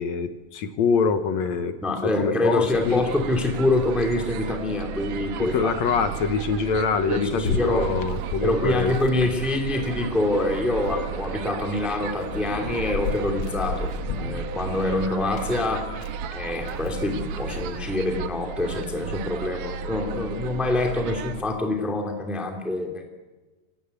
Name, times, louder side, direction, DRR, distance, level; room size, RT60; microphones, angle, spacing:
voice 1, 0.0-1.7 2.2-3.0 5.4-8.9, left 5 dB, 65° left, 9 dB, 2.2 m, -24 dB
voice 2, 1.8-5.7 7.1-8.0 8.4-13.9 14.2-15.9 16.3-23.0, left 2 dB, ahead, 2 dB, 2.3 m, -25 dB
sound 1, 2.7-21.4, right 7 dB, 80° right, 2.5 m, -34 dB
sound 2, 7.4-10.3 10.5-17.8, left 5 dB, 85° left, 1.1 m, -35 dB
24.5 x 18.5 x 8.3 m, 1.2 s
omnidirectional pair, 3.9 m